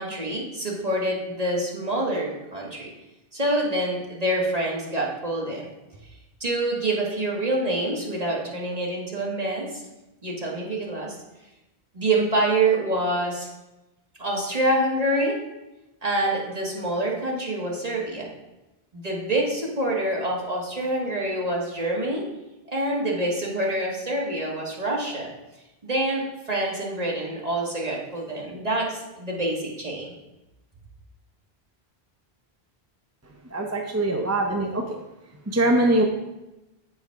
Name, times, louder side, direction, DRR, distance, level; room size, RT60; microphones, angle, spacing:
voice 1, 0.0-2.9 3.3-5.7 6.4-9.8 10.2-11.2 11.9-13.5 14.2-15.4 16.0-18.3 18.9-22.2 22.7-25.3 25.8-30.1, right 1 dB, 40° right, -3 dB, 1.7 m, -26 dB
voice 2, 33.5-34.8 35.5-36.1, right 1 dB, 20° right, 2 dB, 0.5 m, -22 dB
7.9 x 5.4 x 4.6 m, 0.99 s
omnidirectional pair, 1.0 m